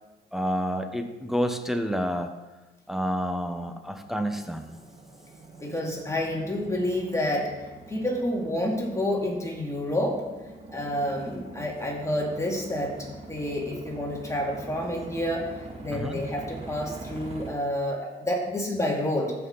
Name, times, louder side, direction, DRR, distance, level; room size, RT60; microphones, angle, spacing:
voice 1, 0.3-2.3 2.9-4.8 15.9-16.2, equal, ahead, 6 dB, 1.0 m, -29 dB
sound 1, 3.6-17.5, right 2 dB, 30° right, 2.0 m, -44 dB
voice 2, 5.6-7.5 7.9-10.2 10.7-15.5 15.8-19.3, left 1 dB, 15° left, -1 dB, 2.5 m, -29 dB
14.5 x 5.8 x 4.0 m, 1.1 s
cardioid pair, 90°, 20 cm